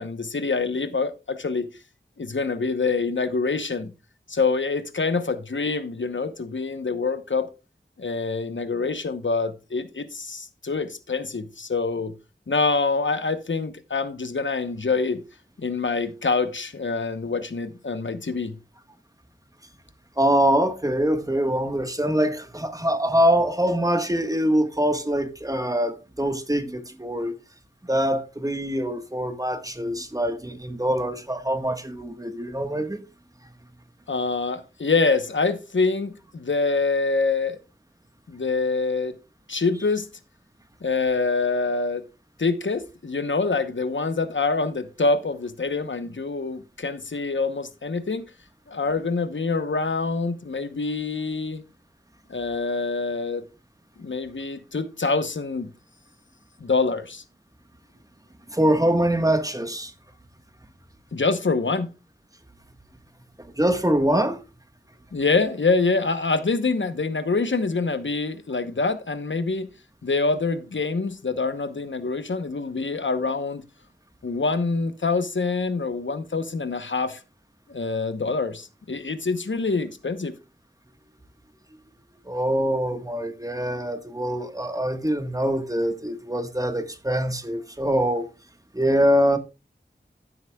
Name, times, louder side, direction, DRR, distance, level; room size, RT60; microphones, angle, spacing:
voice 1, 0.0-1.7 2.2-3.9 4.3-7.5 8.0-12.1 12.5-15.2 15.6-18.6 34.1-37.6 38.3-39.1 39.5-40.1 40.8-42.0 42.4-48.3 48.7-51.6 52.3-53.4 54.0-55.7 56.6-57.2 61.1-61.9 65.1-69.7 70.0-73.6 74.2-77.2 77.7-80.3, left 4 dB, 85° left, 0.9 m, -25 dB
voice 2, 20.2-27.4 27.8-33.0 58.5-59.9 63.6-64.4 82.2-88.3 88.7-89.4, equal, 20° right, 1.4 m, -24 dB
15.0 x 8.0 x 2.3 m
wide cardioid pair, 45°, 19 cm